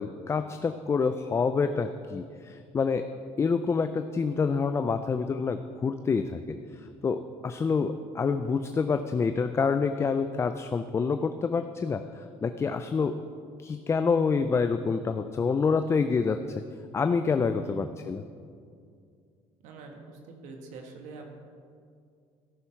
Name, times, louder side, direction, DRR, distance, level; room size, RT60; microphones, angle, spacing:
voice 1, 0.0-3.1 3.4-6.6 7.0-13.2 13.6-16.4 16.9-18.2, left 5 dB, 20° left, 9 dB, 0.3 m, -27 dB
voice 2, 17.3-17.9 19.6-21.2, right 3 dB, 85° right, 3 dB, 1.4 m, -45 dB
13.5 x 6.2 x 5.7 m, 2.3 s
cardioid pair, 130°, 12 cm